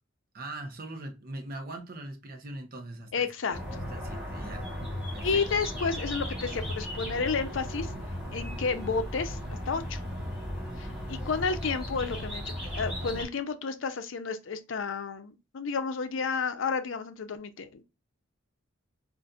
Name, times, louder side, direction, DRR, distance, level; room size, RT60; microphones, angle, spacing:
voice 1, 0.3-3.3 3.9-4.7 5.1-5.4 10.9-11.3, right 2 dB, 45° right, 0.8 m, -41 dB
voice 2, 3.1-3.6 5.2-7.9 8.3-9.4 9.7-10.0 10.8-17.8, left 5 dB, 65° left, 0.5 m, -31 dB
sound 1, 3.5-13.2, equal, 5° right, 1.3 m, -36 dB
3.9 x 2.5 x 2.4 m
head